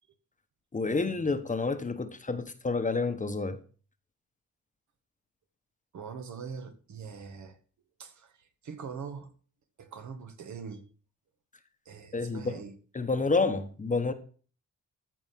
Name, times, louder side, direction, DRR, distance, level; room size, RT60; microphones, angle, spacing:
voice 1, 0.7-3.6 12.1-12.5 12.9-14.1, left 3 dB, 25° left, 1.2 m, -29 dB
voice 2, 5.9-7.6 8.0-9.3 9.8-10.8 11.9-12.8, right 6 dB, 65° right, 1.9 m, -42 dB
14.0 x 5.0 x 5.9 m
cardioid pair, 95°, 32 cm